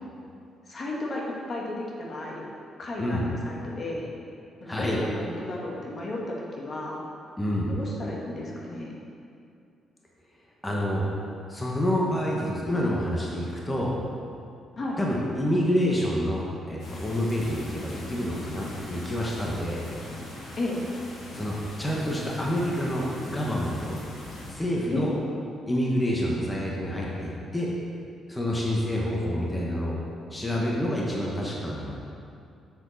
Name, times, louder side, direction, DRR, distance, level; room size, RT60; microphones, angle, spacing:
voice 1, 0.7-2.4 2.8-4.1 4.8-7.0 7.7-9.0 14.8-15.0 20.6-20.8 24.9-25.1, left 2 dB, 45° left, -3 dB, 1.4 m, -33 dB
voice 2, 4.6-5.0 7.4-7.7 10.6-11.1 11.5-13.9 15.0-19.8 21.3-24.0 24.5-25.1 25.7-27.7 28.3-30.0 30.3-31.9, equal, 15° left, -4 dB, 1.2 m, -28 dB
sound 1, 16.8-24.5, left 1 dB, 65° left, 1.9 m, -41 dB
7.3 x 6.1 x 4.1 m, 2.5 s
cardioid pair, 90°, 0 cm